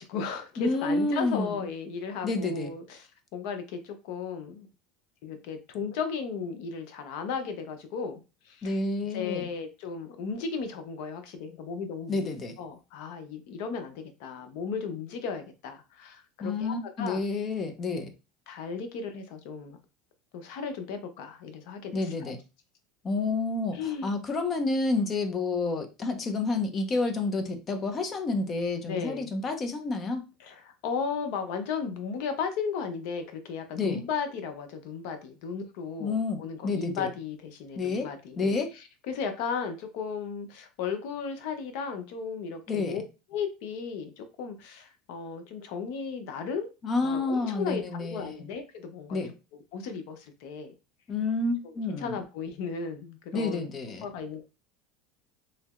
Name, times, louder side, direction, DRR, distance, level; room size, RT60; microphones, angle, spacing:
voice 1, 0.0-4.7 5.2-8.2 8.5-8.8 9.1-12.2 12.6-17.2 18.5-19.8 20.3-22.3 23.7-24.1 28.9-29.3 30.4-38.6 39.1-43.0 43.3-46.7 47.0-49.2 49.5-50.7 51.9-53.7 54.0-54.4, left 5 dB, 70° left, 0.6 m, -35 dB
voice 2, 0.6-1.7 2.2-2.7 8.6-9.5 12.1-12.5 16.4-18.1 21.9-22.4 23.0-30.2 33.8-34.0 36.0-37.1 37.8-38.7 42.7-43.0 46.8-48.4 49.1-49.3 51.1-52.2 53.3-54.1, left 3 dB, 30° left, 0.6 m, -29 dB
3.2 x 2.7 x 2.4 m
supercardioid pair, 125°, 0 cm